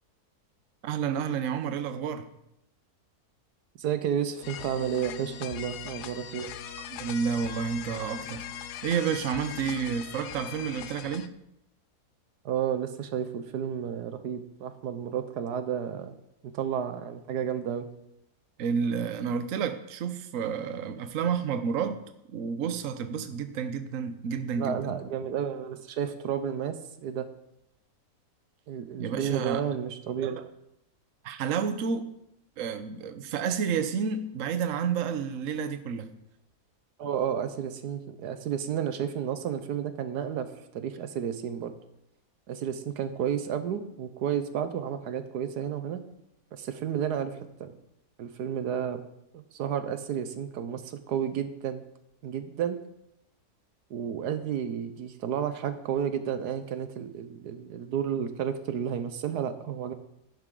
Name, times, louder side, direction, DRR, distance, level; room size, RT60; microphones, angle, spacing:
voice 1, 0.8-2.2 6.9-11.3 18.6-22.0 22.3-25.0 29.0-29.6 30.2-30.4 31.2-32.1 32.6-36.2, right 6 dB, 60° right, 9 dB, 1.1 m, -30 dB
voice 2, 3.8-6.5 12.4-16.2 16.4-17.9 24.6-27.3 28.7-30.4 37.0-40.5 40.7-41.7 42.5-46.0 46.5-47.7 48.2-49.0 49.3-51.8 52.2-52.8 53.9-59.9, right 8 dB, 90° right, 10 dB, 1.4 m, -31 dB
sound 1, 4.4-11.3, left 10 dB, 85° left, 1.2 m, -40 dB
11.0 x 11.0 x 3.8 m, 0.82 s
omnidirectional pair, 1.7 m